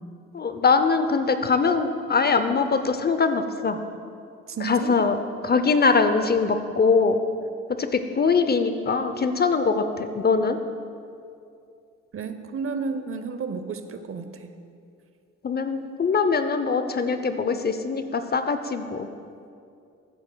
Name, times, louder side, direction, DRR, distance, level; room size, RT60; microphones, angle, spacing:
voice 1, 0.3-3.8 4.6-7.2 7.7-10.6 15.4-19.1, left 4 dB, 30° left, 9 dB, 0.6 m, -22 dB
voice 2, 4.5-5.0 12.1-14.5, right 5 dB, 45° right, 9 dB, 0.7 m, -32 dB
14.0 x 9.4 x 2.3 m, 2.5 s
supercardioid pair, 55°, 32 cm